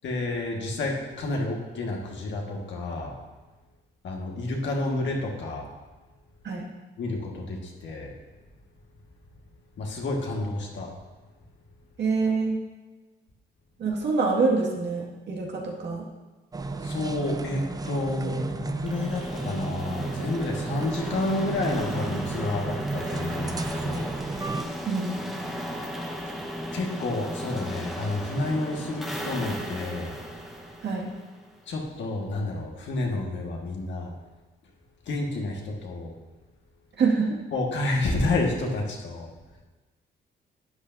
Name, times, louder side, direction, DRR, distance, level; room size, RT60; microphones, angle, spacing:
voice 1, 0.0-3.2 4.0-5.7 7.0-8.1 9.8-10.9 16.8-24.1 26.7-30.2 31.7-34.1 35.1-36.1 37.5-39.3, left 2 dB, 65° left, 0 dB, 1.8 m, -30 dB
voice 2, 12.0-12.6 13.8-16.0 18.2-18.4 24.8-25.2 30.8-31.1 37.0-37.4, right 4 dB, 60° right, -2 dB, 2.1 m, -26 dB
sound 1, 16.5-24.6, right 3 dB, 20° right, 0.5 m, -33 dB
sound 2, 18.9-31.7, equal, ahead, 1.2 m, -36 dB
11.5 x 8.5 x 2.7 m, 1.2 s
cardioid pair, 90°, 20 cm